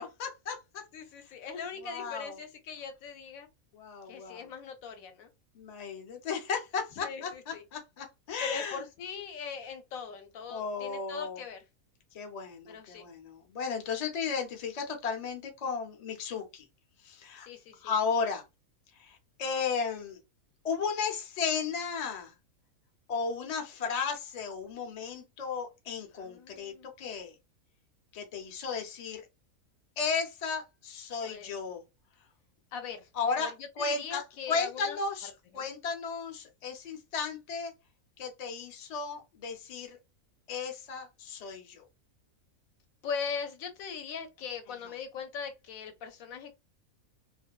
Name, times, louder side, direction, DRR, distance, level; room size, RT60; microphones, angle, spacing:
voice 1, 0.0-0.8 1.8-2.4 3.7-4.5 5.5-8.8 10.5-11.4 12.1-16.6 17.0-17.5 17.8-18.4 19.0-20.2 20.6-22.3 23.1-27.3 28.1-29.2 30.0-31.8 33.1-37.7 38.2-40.0 40.5-41.9, left 5 dB, 45° left, 0.5 m, -34 dB
voice 2, 0.9-3.5 4.1-5.3 7.0-7.6 8.4-11.6 12.7-13.1 17.4-17.9 26.1-26.9 31.2-31.5 32.7-33.1 33.3-35.0 35.5-35.7 43.0-46.6, left 6 dB, 75° left, 1.0 m, -40 dB
2.6 x 2.2 x 2.3 m
omnidirectional pair, 1.5 m